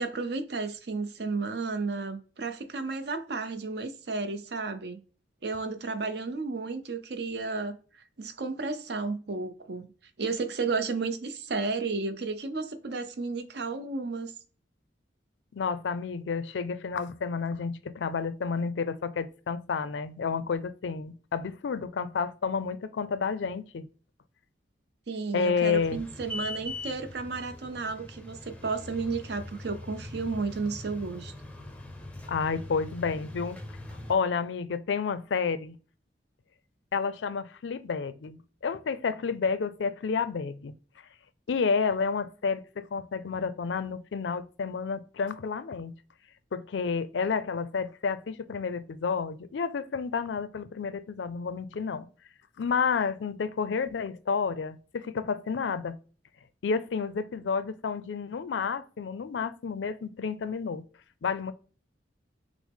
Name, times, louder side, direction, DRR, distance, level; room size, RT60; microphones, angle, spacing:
voice 1, 0.0-5.0 5.4-9.9 10.2-14.3 25.1-31.3, right 4 dB, 65° right, 0.6 m, -33 dB
voice 2, 15.5-23.9 25.3-26.0 32.3-33.6 34.1-35.8 36.9-40.7 41.5-45.9 46.5-52.1 52.6-56.0 56.6-60.8 61.2-61.5, left 5 dB, 85° left, 0.4 m, -30 dB
sound 1, 25.7-34.1, left 2 dB, 5° left, 0.5 m, -42 dB
6.0 x 2.0 x 3.5 m
head